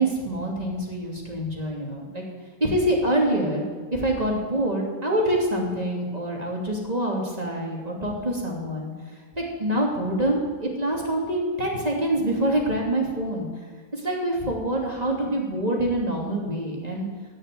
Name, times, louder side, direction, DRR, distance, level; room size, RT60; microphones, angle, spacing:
voice 1, 0.0-2.2 2.6-3.6 3.9-13.5 13.9-17.1, right 1 dB, 30° right, -2 dB, 3.0 m, -26 dB
17.0 x 6.5 x 9.3 m, 1.5 s
omnidirectional pair, 1.4 m